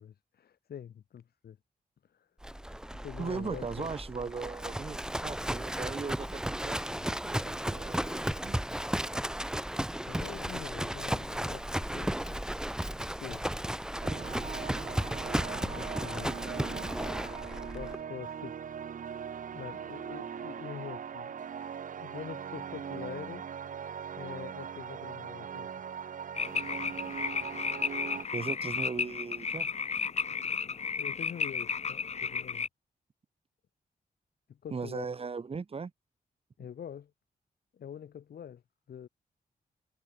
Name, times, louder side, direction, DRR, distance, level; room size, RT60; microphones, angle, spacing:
voice 1, 0.0-1.6 3.0-3.9 9.9-12.4 13.0-13.5 15.6-16.4 17.7-18.7 19.5-21.5 21.9-23.5 23.7-23.8 24.2-25.7 30.2-30.7 31.0-32.7 34.5-35.1 36.6-37.1 37.7-38.6 38.9-39.1, left 9 dB, 85° left, 7.6 m, -45 dB
Livestock farm animals working animals, 2.4-18.0, right 1 dB, 5° right, 1.3 m, -34 dB
voice 2, 3.2-8.6 28.3-29.7 34.7-35.9, right 5 dB, 40° right, 1.7 m, -38 dB
sound 1, 14.0-28.2, right 7 dB, 60° right, 1.0 m, -40 dB
sound 2, 26.3-32.7, left 5 dB, 45° left, 1.8 m, -33 dB
wide cardioid pair, 125°, 16 cm